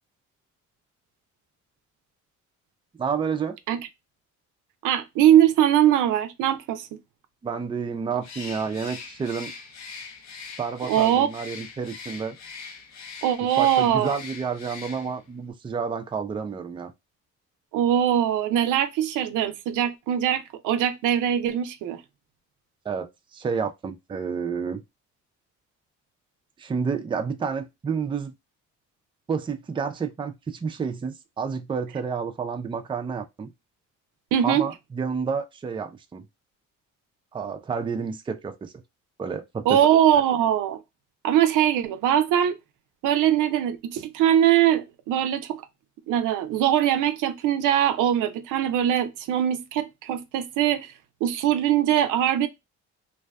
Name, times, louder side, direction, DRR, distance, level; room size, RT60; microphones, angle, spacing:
voice 1, 3.0-3.6 7.4-9.5 10.6-12.4 13.6-16.9 22.9-24.8 26.6-28.3 29.3-33.5 34.4-36.2 37.3-38.7 39.2-39.8, right 5 dB, 15° right, 0.3 m, -30 dB
voice 2, 4.8-6.9 10.9-11.3 13.2-14.1 17.7-22.0 34.3-34.7 39.7-40.8 41.2-42.6 43.0-45.6 46.1-50.9 51.2-52.5, right 10 dB, 85° right, 0.5 m, -21 dB
Bird, 8.2-15.3, left 5 dB, 65° left, 0.7 m, -41 dB
2.6 x 2.2 x 2.3 m
cardioid pair, 90°, 30 cm